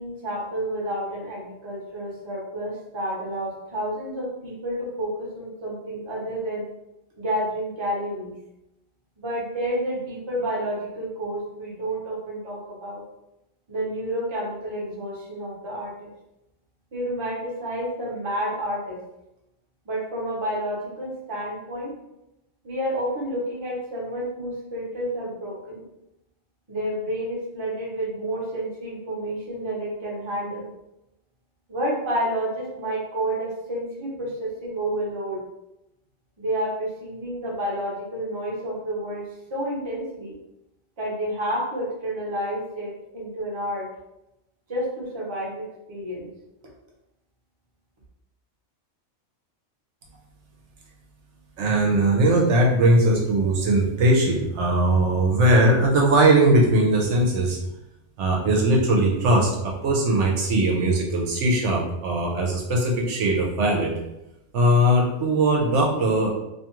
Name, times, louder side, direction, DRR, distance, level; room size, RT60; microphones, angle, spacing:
voice 1, 0.0-6.7 7.2-8.3 9.2-13.0 13.7-16.1 16.9-19.0 19.9-21.9 22.6-25.8 26.7-30.7 31.7-35.4 36.4-39.2 39.5-40.4 41.0-43.9 44.7-46.3, right 1 dB, 30° right, -5 dB, 0.7 m, -30 dB
voice 2, 51.6-57.6 58.2-63.9 64.5-66.3, right 1 dB, 75° right, -1 dB, 0.9 m, -20 dB
2.6 x 2.3 x 2.9 m, 0.90 s
omnidirectional pair, 1.3 m